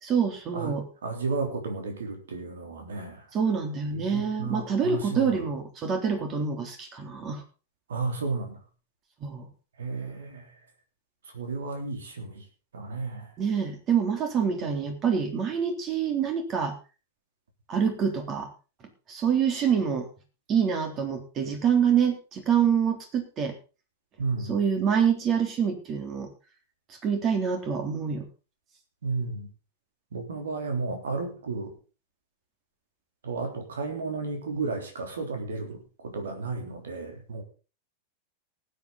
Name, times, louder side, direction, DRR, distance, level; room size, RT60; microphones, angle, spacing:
voice 1, 0.0-0.9 3.3-7.4 9.2-9.5 13.4-16.7 17.7-18.5 19.1-20.1 20.5-23.5 24.5-26.3 27.0-28.2, right 7 dB, 30° right, 5 dB, 3.4 m, -26 dB
voice 2, 0.5-3.2 3.9-5.3 7.9-8.6 9.8-10.4 11.3-12.4 12.7-13.3 24.2-24.6 29.0-29.5 30.1-31.7 33.2-35.8 36.0-37.4, right 3 dB, 65° right, 5 dB, 3.5 m, -33 dB
19.0 x 8.6 x 4.1 m, 0.34 s
figure-of-eight pair, 90°, 0 cm